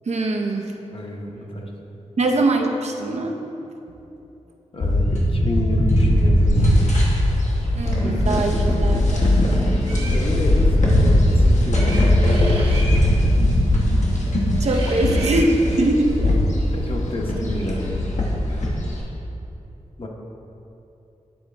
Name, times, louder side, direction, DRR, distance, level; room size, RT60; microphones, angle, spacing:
voice 1, 0.1-0.7 2.2-3.3 7.0-7.1 7.7-9.6 14.6-16.4, right 2 dB, 65° right, 2 dB, 0.6 m, -22 dB
voice 2, 0.9-1.7 4.7-6.7 9.9-12.1 16.7-17.9 18.5-18.6 20.0-20.1, left 1 dB, 45° left, 0 dB, 0.9 m, -29 dB
sound 1, 4.8-19.0, left 1 dB, 80° left, 1.1 m, -19 dB
sound 2, 9.8-10.2 11.7-13.1 14.6-15.5, right 1 dB, 45° right, 1.0 m, -34 dB
9.2 x 3.9 x 3.4 m, 2.9 s
wide cardioid pair, 65°, 12 cm